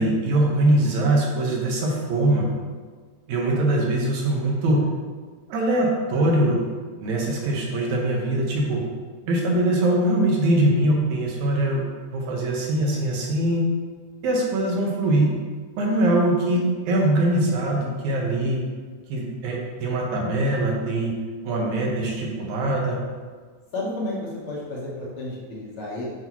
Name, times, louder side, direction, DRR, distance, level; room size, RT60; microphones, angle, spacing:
voice 1, 0.0-2.5 3.3-4.8 5.5-6.6 7.0-8.8 9.3-11.8 12.1-13.6 14.2-15.3 15.8-18.6 19.1-21.1 21.4-23.0, right 1 dB, 70° right, -2 dB, 2.4 m, -22 dB
voice 2, 21.5-22.1 23.7-26.1, left 2 dB, 55° left, -5 dB, 1.7 m, -33 dB
8.2 x 5.6 x 3.0 m, 1.5 s
omnidirectional pair, 3.6 m